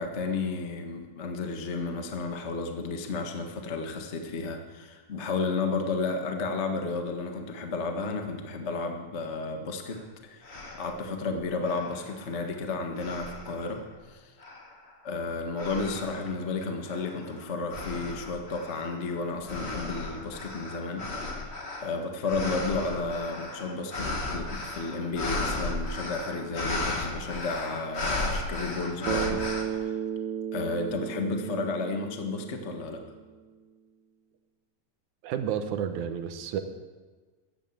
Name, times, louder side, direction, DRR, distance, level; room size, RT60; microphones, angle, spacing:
voice 1, 0.0-14.3 15.0-21.5 21.8-30.0 30.5-33.0, left 3 dB, 70° left, 4 dB, 0.6 m, -32 dB
sound 1, 9.9-10.0 10.4-11.0 11.6-12.5 13.0-13.8 14.4-14.9 15.6-16.3 16.9-29.6, left 2 dB, 35° left, 1.0 m, -35 dB
Bass guitar, 29.1-33.3, right 9 dB, 90° right, 2.6 m, -34 dB
voice 2, 35.2-36.6, right 8 dB, 70° right, 8 dB, 2.2 m, -31 dB
14.5 x 11.0 x 7.2 m, 1.4 s
omnidirectional pair, 3.9 m